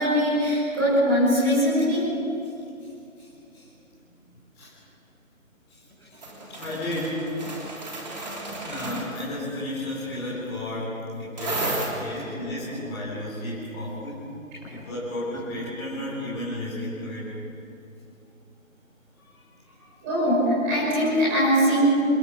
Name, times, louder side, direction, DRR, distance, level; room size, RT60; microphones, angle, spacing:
voice 1, 0.0-2.1 20.0-22.0, equal, 10° right, -10 dB, 6.9 m, -21 dB
voice 2, 2.8-3.7 4.5-4.7 5.7-7.2 8.4-14.3 14.7-17.3 19.2-19.9, left 1 dB, 5° left, -10 dB, 4.3 m, -34 dB
sound 1, 6.2-9.3 11.4-11.9, right 2 dB, 30° right, 3.4 m, -32 dB
28.0 x 15.5 x 6.8 m, 2.7 s
figure-of-eight pair, 160°, 41 cm